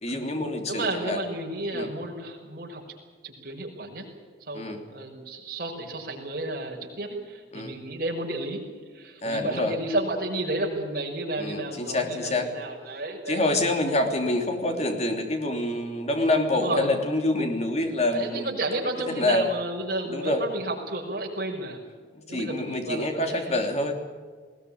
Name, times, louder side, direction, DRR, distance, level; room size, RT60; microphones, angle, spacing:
voice 1, 0.0-1.2 1.7-1.9 4.5-4.8 7.5-7.8 9.2-9.7 11.4-12.5 13.3-18.5 19.1-19.4 20.1-20.4 22.1-23.9, left 2 dB, 40° left, 4 dB, 3.2 m, -26 dB
voice 2, 0.7-2.8 3.2-4.1 4.4-8.6 8.9-13.6 14.1-14.4 16.5-16.9 18.1-21.8 22.3-23.6, right 2 dB, 55° right, 0 dB, 5.8 m, -32 dB
20.5 x 18.5 x 8.8 m, 1.5 s
head